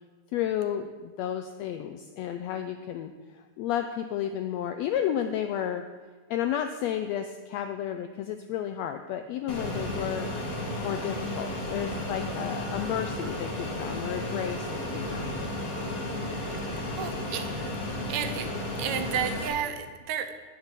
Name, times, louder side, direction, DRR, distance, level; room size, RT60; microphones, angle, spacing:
voice 1, 0.3-5.8 6.3-10.3 10.8-15.2, left 10 dB, 85° left, 7 dB, 1.5 m, -32 dB
Fixed-wing aircraft airplane, 9.5-19.5, left 1 dB, 45° left, 1.3 m, -33 dB
voice 2, 17.0-17.5 18.1-18.5 18.8-20.3, right 8 dB, 75° right, 8 dB, 1.9 m, -31 dB
10.5 x 5.9 x 8.1 m, 1.4 s
omnidirectional pair, 3.5 m